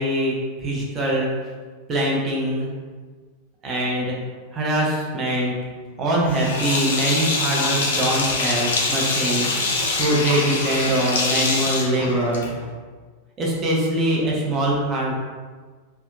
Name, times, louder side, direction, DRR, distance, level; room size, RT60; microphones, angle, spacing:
voice 1, 0.0-1.3 1.9-2.7 3.6-4.2 4.5-5.5 6.0-12.4 13.4-15.1, right 1 dB, 25° right, -4 dB, 0.6 m, -23 dB
Sink (filling or washing), 6.3-12.7, left 3 dB, 60° left, 0.4 m, -24 dB
2.7 x 2.2 x 2.4 m, 1.5 s
figure-of-eight pair, 90°, 0 cm